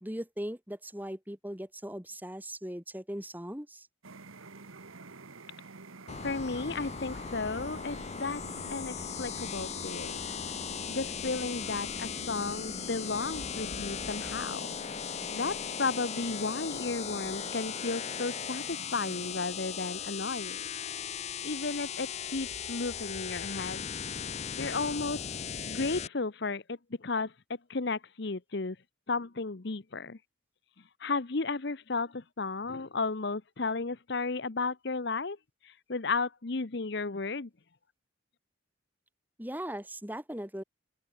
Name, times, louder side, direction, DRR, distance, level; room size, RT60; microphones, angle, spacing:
voice 1, 0.0-3.9 39.4-40.6, equal, 10° right, 2.3 m, -39 dB
sound 1, 4.0-19.3, right 4 dB, 85° right, 1.6 m, -50 dB
sound 2, 6.1-26.1, left 7 dB, 30° left, 0.5 m, -38 dB
voice 2, 6.2-8.4 8.7-10.2 10.9-14.7 15.3-20.7 21.4-23.9 24.6-25.3 25.7-27.3 27.7-28.8 29.1-30.2 31.0-35.4 35.6-37.5, left 3 dB, 55° left, 0.9 m, -34 dB
open air
head